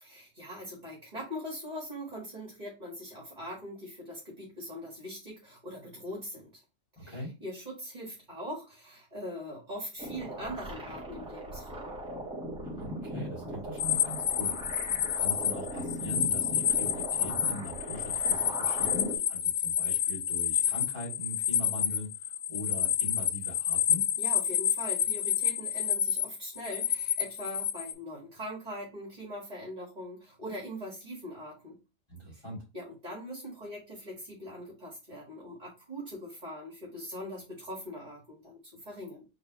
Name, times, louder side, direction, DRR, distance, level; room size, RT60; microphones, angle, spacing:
voice 1, 0.0-6.6 7.0-11.9 24.2-31.8 32.3-32.4 32.7-39.2, equal, 30° right, -2 dB, 1.8 m, -42 dB
voice 2, 7.0-7.3 12.8-14.5 15.1-24.1 32.1-32.6, left 1 dB, 20° left, -5 dB, 2.3 m, -41 dB
sound 1, 10.0-19.1, right 1 dB, 5° right, 1.3 m, -39 dB
sound 2, 13.8-27.9, left 10 dB, 85° left, 1.1 m, -29 dB
4.0 x 3.7 x 2.9 m, 0.28 s
omnidirectional pair, 1.4 m